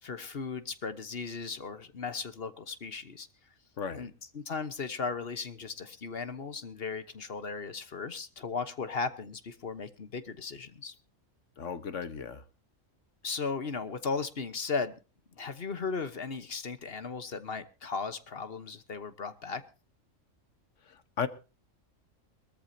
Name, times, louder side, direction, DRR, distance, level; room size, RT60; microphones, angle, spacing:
voice 1, 0.0-3.3 3.9-10.9 13.2-14.9 15.4-19.6, left 4 dB, 50° left, 1.3 m, -36 dB
voice 2, 3.8-4.1 11.6-12.4 20.9-21.3, left 6 dB, 70° left, 1.5 m, -35 dB
22.5 x 13.5 x 2.8 m
omnidirectional pair, 1.3 m